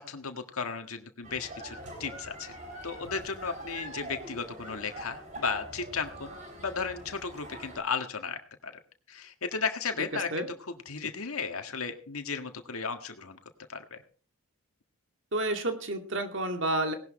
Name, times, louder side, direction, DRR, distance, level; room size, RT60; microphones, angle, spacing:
voice 1, 0.0-2.6 2.8-8.7 9.1-13.4 13.7-14.0, left 5 dB, 85° left, 6 dB, 1.7 m, -35 dB
sound 1, 1.2-7.8, right 1 dB, 35° right, 6.1 m, -44 dB
voice 2, 15.3-16.9, right 1 dB, 60° right, 5 dB, 2.3 m, -30 dB
18.5 x 11.5 x 4.3 m, 0.41 s
head